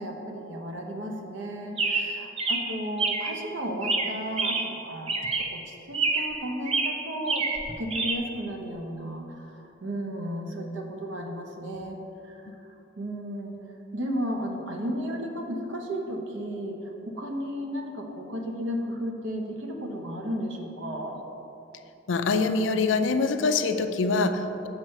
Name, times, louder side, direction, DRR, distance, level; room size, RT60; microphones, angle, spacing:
voice 1, 0.0-12.0 12.2-12.5 13.0-13.6 13.9-16.8 17.1-21.2, equal, 70° right, 2 dB, 0.9 m, -34 dB
Chirp tweet, 1.8-3.4 3.8-4.8 5.1-5.6 5.9-6.4 6.7-8.2, right 3 dB, 30° right, 0.5 m, -28 dB
voice 2, 22.1-24.7, left 4 dB, 70° left, 8 dB, 0.4 m, -24 dB
6.1 x 4.5 x 6.4 m, 3.0 s
head